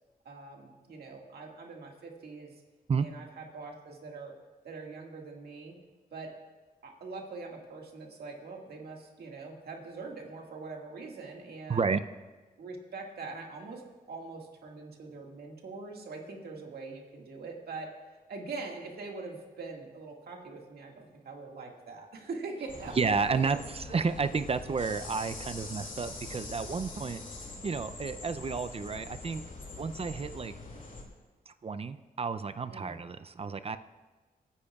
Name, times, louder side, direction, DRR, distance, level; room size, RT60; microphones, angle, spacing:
voice 1, 0.3-2.5 3.0-4.4 4.6-5.7 6.1-6.3 6.8-11.9 12.6-13.8 14.1-17.9 18.3-23.1 32.7-33.0, right 3 dB, 80° right, 0 dB, 2.0 m, -43 dB
voice 2, 11.7-12.0 23.0-27.2 27.6-29.4 29.8-30.5 31.5-33.8, right 5 dB, 40° right, 11 dB, 0.5 m, -31 dB
sound 1, 22.7-31.0, left 3 dB, 55° left, 2.4 m, -44 dB
28.0 x 9.9 x 2.4 m, 1.2 s
cardioid pair, 70°, 16 cm